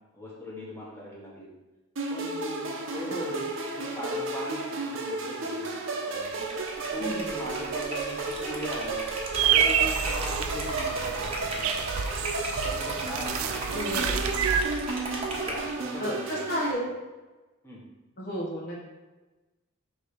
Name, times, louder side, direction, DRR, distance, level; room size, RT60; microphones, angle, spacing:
voice 1, 0.1-1.5 2.1-3.4 3.7-6.5 6.9-9.1 9.5-11.6 12.6-13.8 15.3-16.8 17.6-17.8, equal, 10° left, -5 dB, 1.5 m, -40 dB
sound 1, 2.0-16.7, right 3 dB, 65° right, 0.9 m, -33 dB
voice 2, 3.1-3.4 7.0-7.3 13.7-14.2 16.0-16.9 18.2-18.8, equal, 45° left, -4 dB, 1.1 m, -32 dB
Liquid, 6.2-15.7, right 1 dB, 30° right, 1.0 m, -37 dB
sound 2, 9.3-14.6, right 8 dB, 85° right, 0.5 m, -28 dB
6.4 x 3.6 x 5.1 m, 1.1 s
head